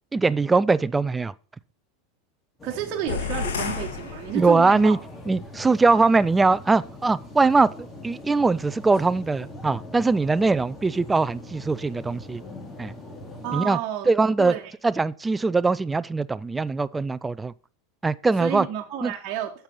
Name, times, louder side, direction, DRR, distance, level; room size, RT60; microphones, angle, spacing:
voice 1, 0.1-1.3 4.3-5.0 5.3-7.7 8.0-12.4 12.8-12.9 13.5-13.8 14.1-14.5 14.8-17.5 18.0-18.7 19.0-19.1, right 3 dB, 15° right, 0.4 m, -21 dB
sound 1, 2.6-13.6, left 1 dB, 20° left, 2.5 m, -42 dB
voice 2, 2.6-5.0 13.4-14.1 14.4-14.7 18.4-19.6, right 10 dB, 45° right, 1.4 m, -31 dB
sound 2, 3.1-4.9, left 6 dB, 85° left, 1.8 m, -31 dB
8.9 x 6.9 x 5.6 m
hypercardioid pair, 105°, 0 cm